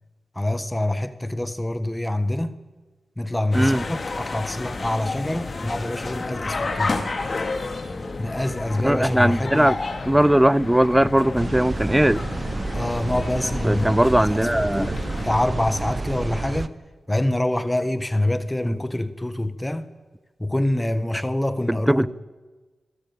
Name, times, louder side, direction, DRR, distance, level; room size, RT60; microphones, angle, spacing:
voice 1, 0.3-2.5 3.2-6.9 8.2-9.7 12.7-13.9 14.2-14.4 14.7-16.7 17.1-19.9 20.4-22.1, left 1 dB, 15° left, 1.4 m, -25 dB
sound 1, 3.5-15.4, left 3 dB, 45° left, 2.3 m, -31 dB
voice 2, 8.8-9.8 10.1-12.2 13.6-14.9 18.7-18.8 21.7-22.1, right 1 dB, 10° right, 0.5 m, -19 dB
sound 2, 11.4-16.7, right 3 dB, 35° right, 0.8 m, -30 dB
23.5 x 13.5 x 9.1 m
cardioid pair, 60°, 0 cm